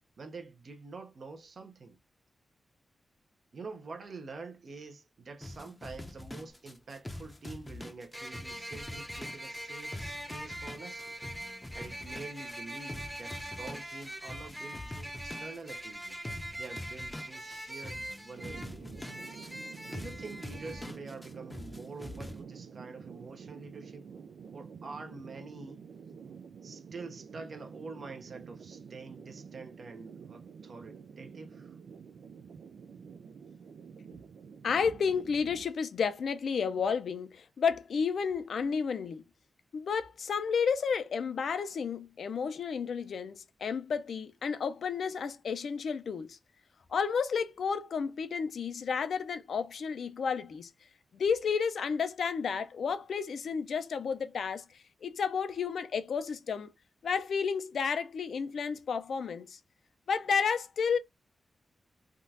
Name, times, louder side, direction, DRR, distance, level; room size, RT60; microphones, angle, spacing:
voice 1, 0.2-2.0 3.5-11.2 11.7-16.2 16.5-19.0 19.8-24.1 24.5-25.8 26.6-31.8, right 3 dB, 60° right, 0.7 m, -46 dB
sound 1, 5.4-22.4, left 1 dB, 20° left, 0.6 m, -45 dB
sound 2, 6.5-6.6 8.1-20.9, right 1 dB, 10° right, 0.8 m, -43 dB
sound 3, 18.3-35.6, right 6 dB, 85° right, 0.3 m, -49 dB
voice 2, 34.6-39.2 39.7-46.4 46.9-50.7 51.1-54.6 55.0-56.7 57.0-59.6 60.1-61.0, left 6 dB, 80° left, 0.5 m, -31 dB
3.6 x 2.4 x 2.6 m
cardioid pair, 75°, 0 cm